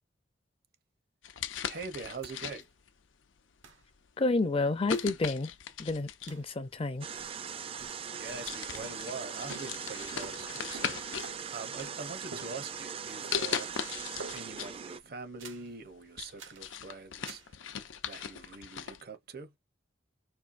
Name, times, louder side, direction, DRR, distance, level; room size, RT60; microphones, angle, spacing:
sound 1, 1.2-2.9 3.6-3.9 4.9-6.5 7.5-7.6 8.1-8.2 8.5-11.3 11.7-12.4 13.3-14.7 15.1-15.2 15.7-19.0, left 7 dB, 85° left, 0.6 m, -38 dB
voice 1, 1.6-2.7 8.1-13.7 14.3-17.7 18.0-19.5, right 4 dB, 55° right, 0.7 m, -44 dB
sound 2, 2.2-2.3 2.6-2.7 3.6-3.9 4.9-5.2 6.3-6.5 7.2-7.5 7.8-9.2 9.5-11.7 12.3-13.0 13.2-13.7 14.2-14.7 15.4-15.7 16.4-16.7 17.3-17.5, right 3 dB, 85° right, 1.2 m, -49 dB
voice 2, 4.2-5.5 5.8-7.1, left 2 dB, 30° left, 0.4 m, -30 dB
sound 3, 7.0-15.0, right 7 dB, 30° right, 0.4 m, -40 dB
4.4 x 2.7 x 2.5 m
head